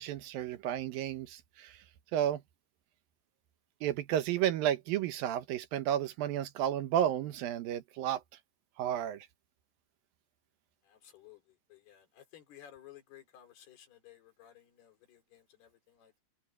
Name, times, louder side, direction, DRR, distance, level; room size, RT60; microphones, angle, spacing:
voice 1, 0.0-1.8 2.1-2.4 3.8-8.2 8.8-9.3, right 11 dB, 75° right, 2.7 m, -32 dB
voice 2, 10.9-11.4 11.7-16.2, left 11 dB, 85° left, 5.4 m, -56 dB
omnidirectional pair, 4.4 m